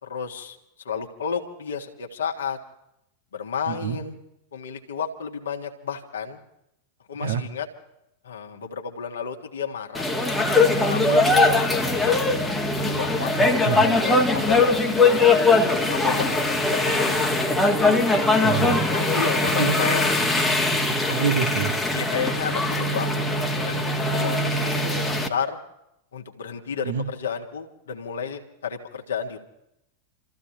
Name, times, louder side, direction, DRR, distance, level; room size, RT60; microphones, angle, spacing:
voice 1, 0.0-0.6 0.8-2.6 3.3-4.2 4.5-6.4 7.1-7.7 8.2-10.1 10.7-11.5 11.8-12.3 12.8-15.3 15.9-17.7 18.9-20.0 21.0-21.2 21.9-23.3 23.6-25.6 26.1-29.4, left 6 dB, 65° left, 3 dB, 1.8 m, -32 dB
voice 2, 3.7-4.0 7.2-7.4 13.4-13.8 18.4-18.9 19.6-19.7 21.1-21.7 26.8-27.0, right 7 dB, 60° right, 5 dB, 1.5 m, -26 dB
sound 1, 9.9-25.3, left 2 dB, 10° left, 1.5 m, -21 dB
29.5 x 14.5 x 3.0 m, 0.81 s
figure-of-eight pair, 90°, 0 cm